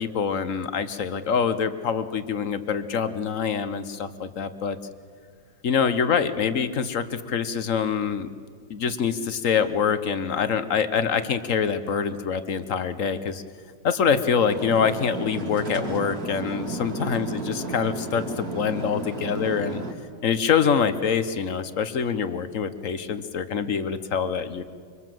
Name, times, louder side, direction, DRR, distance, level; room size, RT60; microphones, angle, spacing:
voice 1, 0.0-4.8 5.6-8.3 8.7-13.4 13.8-19.8 20.2-24.6, left 6 dB, 50° left, 11 dB, 1.3 m, -25 dB
sound 1, 14.4-19.9, right 2 dB, 55° right, 3.0 m, -33 dB
25.0 x 24.5 x 7.7 m, 2.2 s
omnidirectional pair, 1.9 m